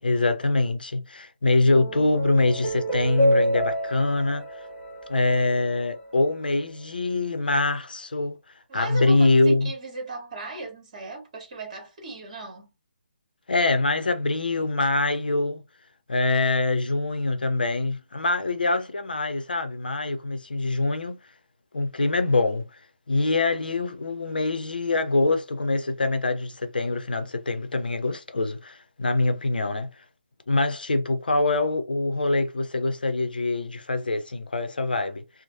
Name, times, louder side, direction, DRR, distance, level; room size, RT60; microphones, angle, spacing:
voice 1, 0.0-4.4 5.1-8.4 8.7-9.7 13.5-15.6 16.1-21.2 21.7-22.7 23.1-29.9 30.5-35.2, left 2 dB, 65° left, 0.6 m, -24 dB
sound 1, 1.4-6.0, right 1 dB, 15° left, 1.4 m, -28 dB
voice 2, 8.7-12.7, right 2 dB, 40° right, 1.2 m, -37 dB
3.1 x 2.1 x 2.5 m
figure-of-eight pair, 140°, 5 cm